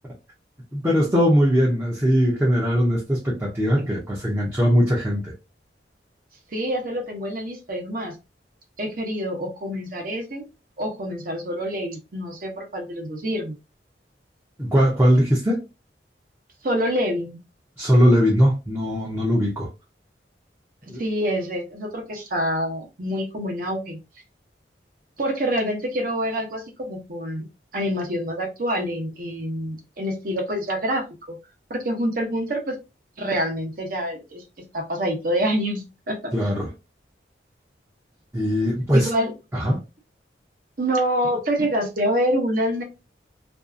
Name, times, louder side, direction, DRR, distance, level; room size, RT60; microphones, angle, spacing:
voice 1, 0.7-5.3 14.6-15.6 17.8-19.7 20.9-21.0 36.3-36.7 38.3-39.1 39.5-39.8, equal, 15° right, 0.5 m, -20 dB
voice 2, 6.5-8.1 8.8-10.5 10.8-13.6 16.6-17.4 20.8-24.0 25.2-31.4 31.7-32.8 33.2-34.4 34.7-36.5 38.9-39.3 40.8-42.8, equal, 50° right, 0.8 m, -26 dB
2.6 x 2.4 x 2.5 m
head